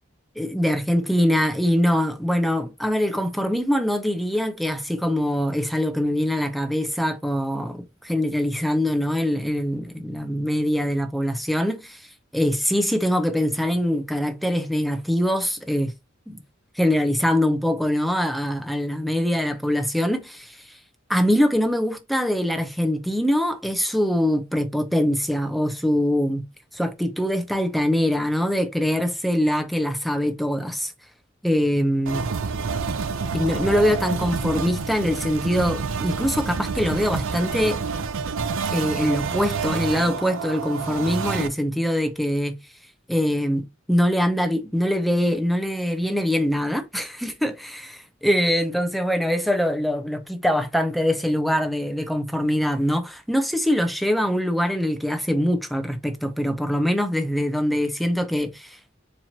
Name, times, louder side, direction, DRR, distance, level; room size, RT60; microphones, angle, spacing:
voice 1, 0.4-15.9 16.3-16.4 16.8-20.8 21.1-26.4 26.7-30.9 31.4-32.3 33.3-37.8 38.7-42.6 43.1-59.0, equal, ahead, 0.6 m, -23 dB
sound 1, 32.1-41.5, right 5 dB, 85° right, 0.5 m, -28 dB
4.3 x 2.9 x 2.8 m
head